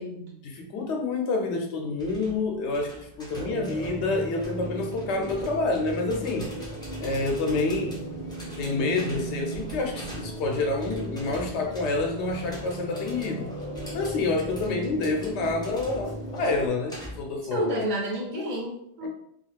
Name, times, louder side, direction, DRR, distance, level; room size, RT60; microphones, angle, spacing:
voice 1, 0.4-6.5 7.0-8.0 8.6-13.5 13.9-17.8 19.0-19.1, left 3 dB, 85° left, 3 dB, 0.9 m, -28 dB
sound 1, 2.0-17.4, equal, 5° left, 0.5 m, -45 dB
sound 2, 3.3-16.7, right 1 dB, 50° left, 0.7 m, -37 dB
voice 2, 17.5-19.1, equal, 50° right, -3 dB, 0.7 m, -30 dB
2.4 x 2.3 x 3.2 m, 0.71 s
omnidirectional pair, 1.1 m